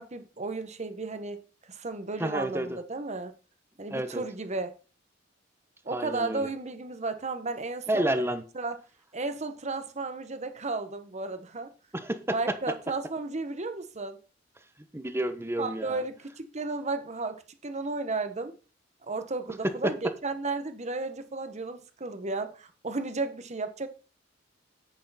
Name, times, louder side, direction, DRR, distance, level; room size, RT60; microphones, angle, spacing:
voice 1, 0.0-1.4 1.7-3.3 3.8-4.8 5.8-8.1 8.5-8.8 9.1-11.7 12.3-14.2 15.6-18.5 19.0-23.9, right 3 dB, 35° right, 1.2 m, -34 dB
voice 2, 2.2-2.8 3.9-4.2 5.9-6.5 7.9-8.4 11.9-12.4 14.9-16.0 19.8-19.9, right 1 dB, 15° right, 1.1 m, -30 dB
10.0 x 8.4 x 4.2 m
head